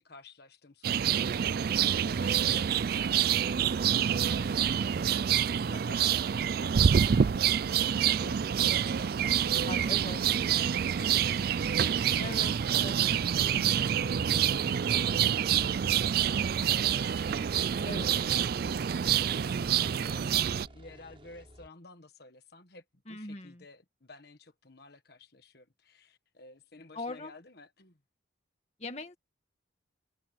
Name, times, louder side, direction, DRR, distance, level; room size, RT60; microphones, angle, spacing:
voice 1, 0.0-11.3 12.1-12.4 12.7-18.7 19.0-28.0, left 3 dB, 50° left, 1.5 m, -52 dB
sound 1, 0.8-20.7, right 8 dB, 50° right, 0.3 m, -27 dB
voice 2, 9.6-10.2 12.2-12.9 13.4-13.6 17.9-18.1 23.1-23.6 26.9-27.3 28.8-29.2, left 2 dB, 35° left, 2.1 m, -40 dB
sound 2, 15.0-21.7, equal, 25° right, 5.6 m, -52 dB
sound 3, 16.6-19.6, left 8 dB, 90° left, 7.3 m, -56 dB
head